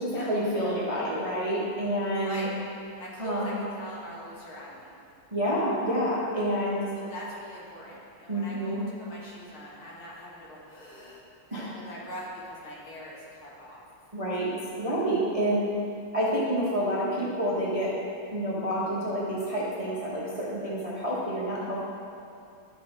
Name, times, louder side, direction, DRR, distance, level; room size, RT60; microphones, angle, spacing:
voice 1, 0.0-2.5 3.2-3.5 5.3-6.8 8.3-8.8 11.5-11.7 14.1-14.5 14.8-15.7 16.1-17.9 18.3-21.8, equal, 25° right, -7 dB, 0.8 m, -28 dB
voice 2, 2.2-2.5 3.0-4.9 6.9-11.2 11.5-13.8, left 1 dB, 75° left, -6 dB, 2.7 m, -42 dB
12.5 x 5.4 x 3.7 m, 2.5 s
omnidirectional pair, 2.3 m